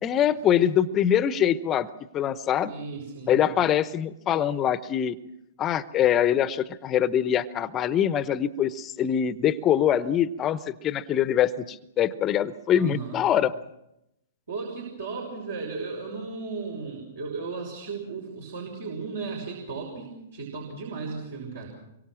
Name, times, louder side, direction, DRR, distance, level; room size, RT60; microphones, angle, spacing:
voice 1, 0.0-1.9 2.1-2.7 3.3-5.1 5.6-13.5, left 10 dB, 25° left, 16 dB, 0.8 m, -24 dB
voice 2, 2.6-3.4 12.7-13.2 14.5-21.7, right 4 dB, 65° right, 0 dB, 5.8 m, -35 dB
25.5 x 23.5 x 6.2 m, 0.86 s
figure-of-eight pair, 110°, 0 cm